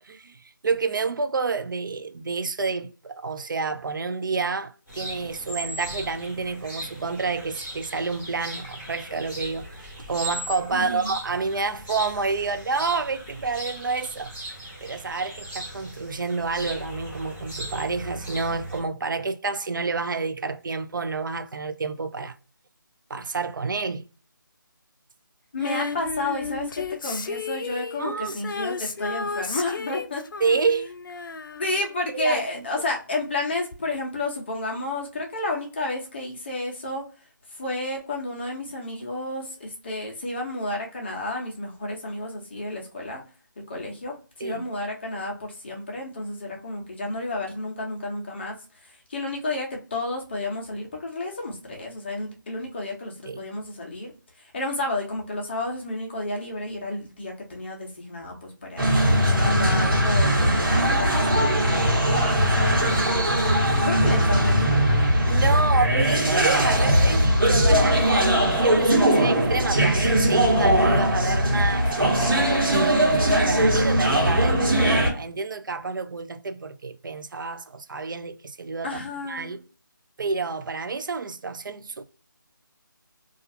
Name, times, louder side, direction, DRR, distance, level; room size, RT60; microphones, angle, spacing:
voice 1, 0.0-14.3 14.8-22.3 23.1-24.0 28.0-28.4 30.4-30.9 32.1-32.6 44.4-44.6 53.3-53.4 65.3-71.8 72.4-78.9 79.3-79.6 80.2-82.0, right 4 dB, 70° right, 0.4 m, -29 dB
sound 1, 4.9-18.8, right 1 dB, 5° right, 0.8 m, -38 dB
voice 2, 10.7-11.1 25.5-30.2 31.5-37.0 37.5-43.2 43.6-48.5 48.8-54.1 54.4-61.2 62.1-63.4 63.8-65.0 71.5-72.1 78.8-79.5, left 2 dB, 30° left, 0.7 m, -31 dB
Female singing, 25.6-32.6 33.7-33.8, left 4 dB, 70° left, 0.4 m, -33 dB
sound 2, 58.8-75.1, right 1 dB, 90° right, 1.2 m, -20 dB
2.4 x 2.4 x 2.6 m
figure-of-eight pair, 170°, 11 cm